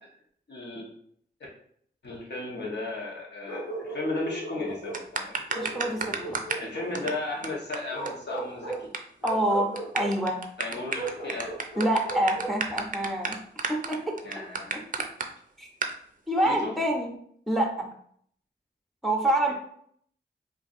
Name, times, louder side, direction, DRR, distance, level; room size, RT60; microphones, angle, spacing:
voice 1, 0.5-0.9 2.0-5.4 6.6-8.9 10.6-11.5 14.2-14.8 16.4-16.7 19.5-19.6, left 2 dB, 65° left, -3 dB, 1.2 m, -35 dB
Bark, 3.4-5.1 5.5-7.2 7.9-8.9 9.2-10.2 10.9-12.6, right 2 dB, 90° left, 1.4 m, -36 dB
sound 1, 4.9-6.7 6.9-7.1 7.4-7.5 7.7-7.8 8.1-8.2 8.4-9.0 9.3-9.4 9.8-15.3 15.8-15.9, right 5 dB, 45° right, 0.4 m, -31 dB
voice 2, 5.5-6.4 9.2-10.4 11.8-13.4 13.7-14.4 15.6-15.7 16.3-17.1 17.5-17.9 19.0-19.5, right 1 dB, ahead, 2 dB, 0.7 m, -27 dB
4.5 x 2.6 x 2.5 m, 0.65 s
cardioid pair, 60°, 19 cm